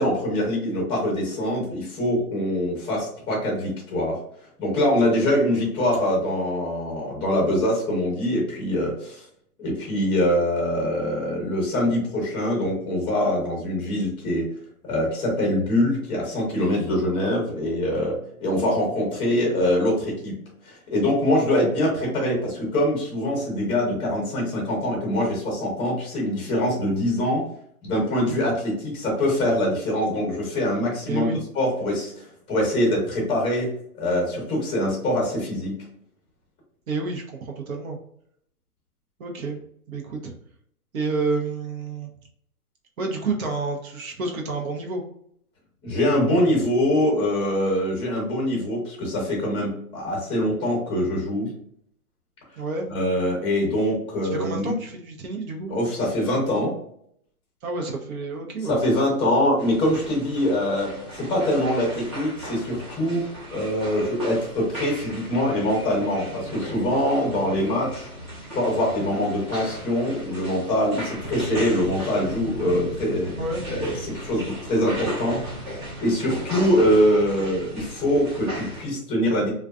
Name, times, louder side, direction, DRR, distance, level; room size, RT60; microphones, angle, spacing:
voice 1, 0.0-4.2 4.6-9.2 9.6-14.5 14.8-20.4 20.6-27.4 27.8-31.3 31.5-35.8 45.8-51.5 52.9-54.7 55.7-56.8 58.6-63.2 63.5-68.1 68.5-73.3 73.7-75.4 76.0-79.5, left 1 dB, 10° left, -2 dB, 0.8 m, -24 dB
voice 2, 31.1-31.4 36.9-38.0 39.2-39.6 39.9-40.3 40.9-42.1 43.0-45.0 52.6-52.9 54.3-55.7 57.6-58.8 73.4-73.7, right 3 dB, 65° right, 1 dB, 0.8 m, -29 dB
sound 1, 59.6-78.9, equal, 20° right, 0.5 m, -36 dB
2.4 x 2.3 x 2.3 m, 0.67 s
hypercardioid pair, 145°, 45 cm